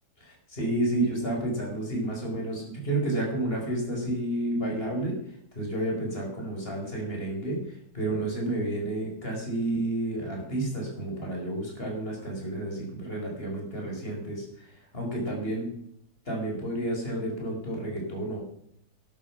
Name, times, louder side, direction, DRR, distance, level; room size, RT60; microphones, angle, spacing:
voice 1, 0.2-5.2 5.6-14.7 14.9-15.7 16.3-18.4, right 1 dB, 35° left, -1 dB, 5.2 m, -30 dB
13.0 x 11.0 x 6.0 m, 0.70 s
omnidirectional pair, 1.7 m